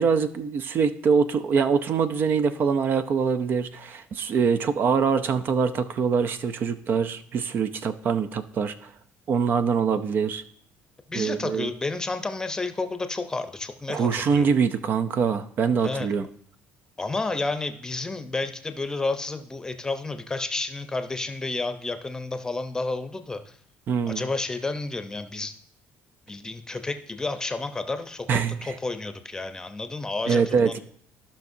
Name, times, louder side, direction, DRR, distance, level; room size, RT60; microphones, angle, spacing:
voice 1, 0.0-8.9 9.3-10.4 11.1-11.7 13.9-16.3 23.9-24.2 28.3-28.7 30.3-30.8, right 6 dB, 50° right, 11 dB, 0.5 m, -24 dB
voice 2, 11.1-14.5 15.8-16.1 17.0-23.6 24.1-25.5 26.3-30.8, left 3 dB, 15° left, 8 dB, 0.7 m, -31 dB
14.5 x 5.7 x 2.7 m, 0.64 s
cardioid pair, 110°, 4 cm